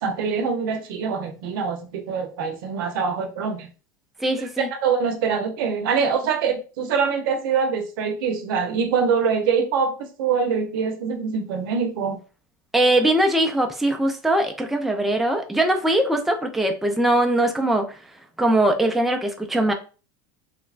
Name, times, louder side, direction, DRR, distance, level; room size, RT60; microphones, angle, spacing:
voice 1, 0.0-3.7 4.8-12.2, right 6 dB, 75° right, 0.7 m, -24 dB
voice 2, 4.2-4.7 12.7-18.0 18.4-19.7, right 1 dB, ahead, 0.4 m, -21 dB
3.1 x 2.0 x 2.4 m
supercardioid pair, 110°, 11 cm